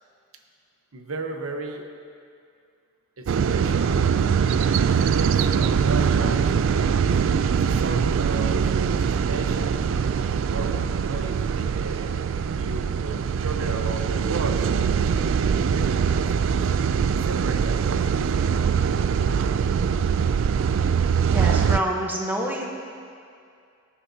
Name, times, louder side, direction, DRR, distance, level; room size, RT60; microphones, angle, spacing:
voice 1, 0.9-1.9 3.2-7.2 7.5-12.1 12.6-16.6 17.3-19.7, right 3 dB, 80° right, 4 dB, 0.9 m, -36 dB
sound 1, 3.3-21.8, right 6 dB, 65° right, 0.3 m, -22 dB
voice 2, 21.3-22.7, right 1 dB, 10° right, -1 dB, 1.0 m, -27 dB
18.0 x 9.7 x 2.8 m, 2.4 s
head